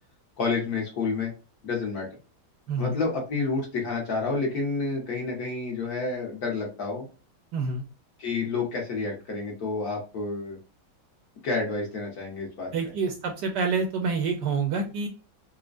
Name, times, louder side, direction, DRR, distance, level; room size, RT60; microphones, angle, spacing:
voice 1, 0.4-1.3 1.6-2.1 2.8-7.0 8.2-10.6 11.4-12.7, left 4 dB, 55° left, -1 dB, 1.5 m, -29 dB
voice 2, 2.7-3.0 7.5-7.8 12.7-15.1, right 4 dB, 70° right, 4 dB, 1.1 m, -27 dB
4.3 x 2.2 x 2.4 m, 0.34 s
omnidirectional pair, 2.1 m